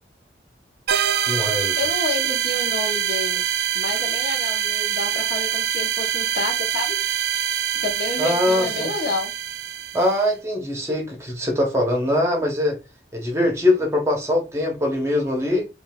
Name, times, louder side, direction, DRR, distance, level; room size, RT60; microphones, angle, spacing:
sound 1, 0.9-10.3, right 10 dB, 65° right, 0.3 m, -24 dB
voice 1, 1.3-1.8 8.2-8.9 9.9-12.8 13.1-15.7, left 1 dB, 15° right, 0.7 m, -22 dB
voice 2, 1.8-3.4 3.7-7.0 7.8-9.3, left 3 dB, 65° left, 0.8 m, -29 dB
3.8 x 2.4 x 2.2 m
head